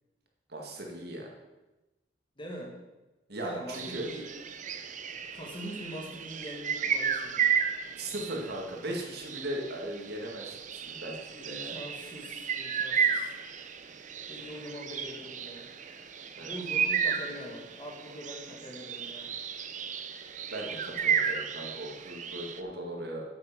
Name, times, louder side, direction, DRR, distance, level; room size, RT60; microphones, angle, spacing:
voice 1, 0.5-1.3 3.3-4.1 7.9-11.8 14.4-14.5 16.4-16.5 20.5-23.3, right 1 dB, 60° right, 0 dB, 2.0 m, -38 dB
voice 2, 2.4-2.7 3.4-4.3 5.3-7.5 11.3-13.3 14.3-15.7 16.4-19.3, equal, 30° left, -1 dB, 2.0 m, -43 dB
sound 1, 3.7-22.6, right 7 dB, 45° right, 0.6 m, -33 dB
8.8 x 8.6 x 5.4 m, 1.1 s
head